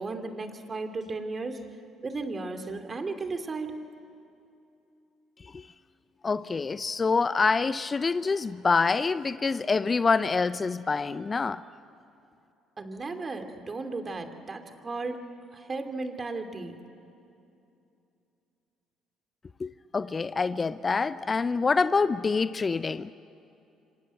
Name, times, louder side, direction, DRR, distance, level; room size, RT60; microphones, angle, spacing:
voice 1, 0.0-1.6 2.0-3.9 12.8-16.8, right 3 dB, 35° right, 7 dB, 2.9 m, -35 dB
voice 2, 6.2-11.6 19.6-23.1, left 4 dB, 35° left, 15 dB, 0.6 m, -26 dB
27.5 x 25.5 x 8.0 m, 2.7 s
hypercardioid pair, 55°, 0 cm